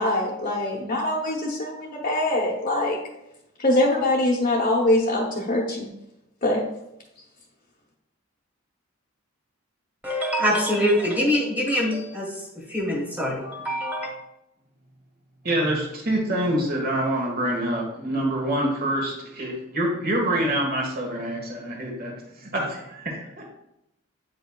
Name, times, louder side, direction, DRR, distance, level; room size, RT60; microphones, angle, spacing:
voice 1, 0.0-3.0 3.6-5.9 6.4-6.6, left 1 dB, 40° left, -4 dB, 0.9 m, -23 dB
voice 2, 10.0-12.4 12.7-14.1, equal, 10° right, -2 dB, 1.4 m, -24 dB
voice 3, 15.4-22.1 22.4-23.5, right 1 dB, 45° right, 0 dB, 1.4 m, -26 dB
8.4 x 5.2 x 2.3 m, 0.85 s
head